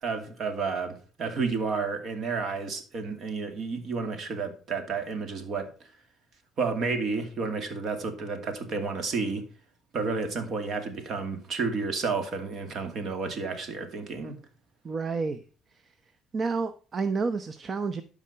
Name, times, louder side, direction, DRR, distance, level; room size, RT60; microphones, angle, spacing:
voice 1, 0.0-5.7 6.6-9.4 9.9-14.4, right 4 dB, 55° right, 2.4 m, -31 dB
voice 2, 14.8-15.4 15.7-15.9 16.3-18.0, right 4 dB, 40° right, 0.8 m, -30 dB
12.0 x 5.0 x 5.6 m
supercardioid pair, 85°, 0 cm